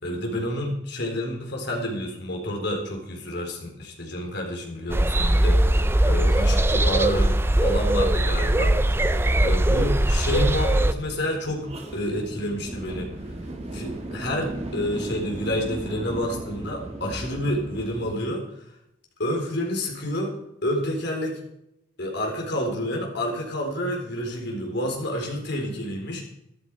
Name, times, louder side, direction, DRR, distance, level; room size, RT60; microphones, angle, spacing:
voice 1, 0.0-8.7 9.4-13.1 13.7-18.4 19.2-20.3 20.6-21.4 22.0-26.2, left 1 dB, 60° left, 1 dB, 4.2 m, -29 dB
sound 1, 4.9-10.9, right 1 dB, 10° right, 0.6 m, -20 dB
sound 2, 10.2-18.2, right 1 dB, 35° right, 2.2 m, -38 dB
13.5 x 12.5 x 4.7 m, 0.82 s
head